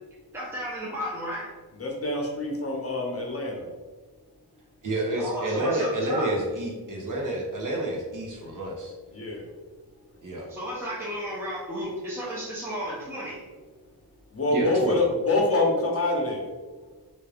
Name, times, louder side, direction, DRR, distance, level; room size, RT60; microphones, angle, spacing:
voice 1, 0.3-1.5 5.1-6.3 10.5-13.4, equal, 5° right, -6 dB, 0.8 m, -33 dB
voice 2, 1.8-3.6 9.1-9.5 14.3-16.5, left 2 dB, 35° left, 0 dB, 0.8 m, -26 dB
voice 3, 4.8-8.9 10.2-10.5 14.5-15.0, right 1 dB, 50° right, -1 dB, 0.9 m, -29 dB
3.4 x 2.5 x 3.4 m, 1.3 s
wide cardioid pair, 90°, 40 cm